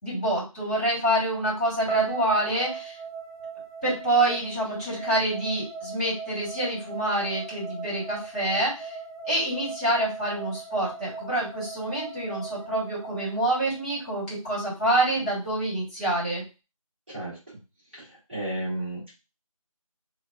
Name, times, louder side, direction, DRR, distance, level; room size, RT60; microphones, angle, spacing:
voice 1, 0.0-3.0 3.8-8.9 9.3-16.4, right 1 dB, 15° left, -8 dB, 1.7 m, -27 dB
sound 1, 1.9-14.0, right 4 dB, 85° left, 1.1 m, -38 dB
voice 2, 17.1-17.6 17.9-19.1, right 1 dB, 20° right, -12 dB, 1.8 m, -34 dB
4.4 x 2.4 x 2.4 m, 0.29 s
figure-of-eight pair, 170°, 18 cm